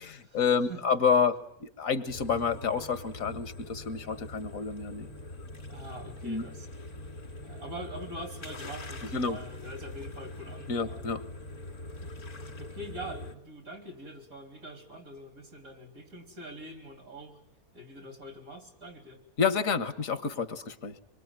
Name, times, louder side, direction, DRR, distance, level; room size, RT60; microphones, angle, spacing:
voice 1, 0.3-5.1 6.2-6.4 9.1-9.4 10.7-11.2 19.4-21.0, left 6 dB, 65° left, 13 dB, 1.8 m, -29 dB
sound 1, 2.1-13.3, left 2 dB, 85° left, 3.5 m, -43 dB
voice 2, 5.7-6.7 7.4-11.0 12.0-12.1 12.6-17.4 17.7-19.2, right 1 dB, 70° right, 7 dB, 4.0 m, -44 dB
26.0 x 23.0 x 9.1 m, 0.63 s
omnidirectional pair, 1.5 m